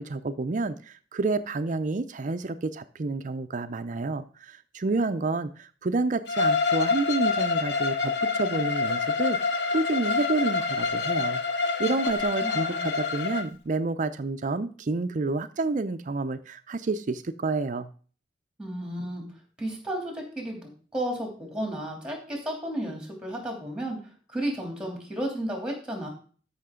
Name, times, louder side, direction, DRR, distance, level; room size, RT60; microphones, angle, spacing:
voice 1, 0.0-11.4 11.8-17.9, right 3 dB, 45° right, 11 dB, 0.5 m, -29 dB
Bowed string instrument, 6.3-13.5, left 4 dB, 65° left, 0.8 m, -26 dB
voice 2, 12.4-12.9 18.6-19.2 19.6-24.0 24.3-26.1, right 1 dB, 5° right, 1 dB, 2.8 m, -33 dB
13.5 x 5.8 x 3.7 m, 0.41 s
head